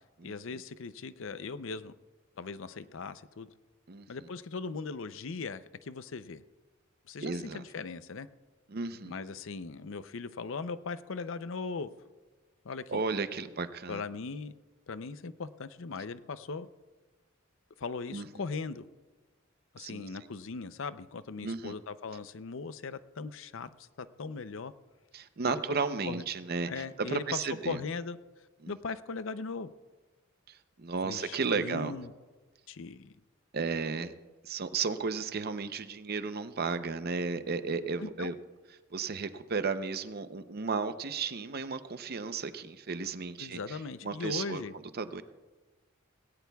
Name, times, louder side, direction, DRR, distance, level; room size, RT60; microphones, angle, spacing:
voice 1, 0.2-1.9 2.4-3.5 4.1-6.4 7.1-8.3 9.0-11.9 12.6-13.0 13.9-14.5 14.9-16.7 17.8-18.9 19.7-24.7 25.5-25.6 26.0-26.2 26.7-28.2 28.7-29.7 31.0-32.1 32.7-33.1 38.0-38.3 43.4-44.7, left 4 dB, 65° left, 13 dB, 0.6 m, -39 dB
voice 2, 3.9-4.3 7.2-7.6 8.7-9.2 12.9-14.0 18.1-18.3 19.8-20.0 21.4-21.8 25.1-27.8 28.6-28.7 30.5-31.9 33.5-34.1 34.4-38.4 38.9-44.6 44.9-45.2, right 4 dB, 50° right, 11 dB, 0.7 m, -34 dB
18.5 x 17.5 x 2.3 m, 1.3 s
head